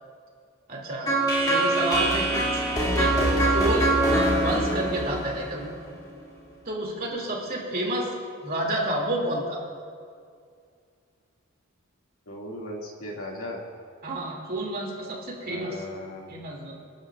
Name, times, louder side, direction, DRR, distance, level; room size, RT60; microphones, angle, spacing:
voice 1, 0.7-1.1 1.5-2.6 2.9-3.2 3.5-3.9 4.4-5.7 6.6-8.1 8.4-9.6 14.0-15.9 16.3-16.8, right 1 dB, 40° right, -2 dB, 2.7 m, -30 dB
sound 1, 1.1-6.0, right 1 dB, 20° left, 2.6 m, -24 dB
voice 2, 12.3-13.6 15.4-16.2, left 1 dB, 75° left, -1 dB, 2.3 m, -37 dB
29.0 x 11.5 x 2.5 m, 2.2 s
head